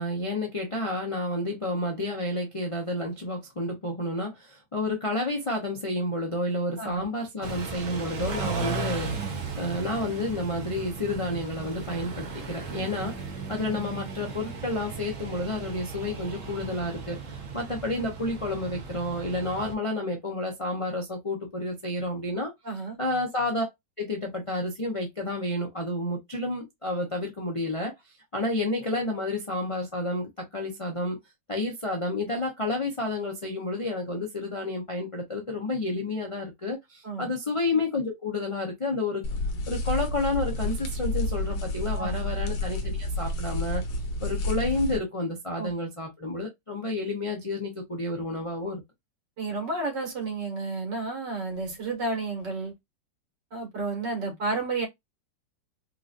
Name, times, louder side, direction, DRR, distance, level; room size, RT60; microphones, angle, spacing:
voice 1, 0.0-9.1 9.6-13.2 13.5-17.2 17.5-22.5 23.0-23.7 24.0-27.9 28.3-31.2 31.5-39.2 39.7-43.8 44.2-48.8, left 2 dB, 45° left, 0.4 m, -30 dB
Car / Idling / Accelerating revving vroom, 7.4-19.7, right 4 dB, 55° right, 1.0 m, -36 dB
voice 2, 22.6-23.0 37.0-37.3 42.0-42.1 45.6-45.7 49.4-52.7 53.5-54.9, right 3 dB, 75° right, 2.4 m, -31 dB
sound 1, 39.2-45.0, left 1 dB, 90° left, 1.6 m, -30 dB
4.6 x 2.5 x 2.4 m
omnidirectional pair, 1.9 m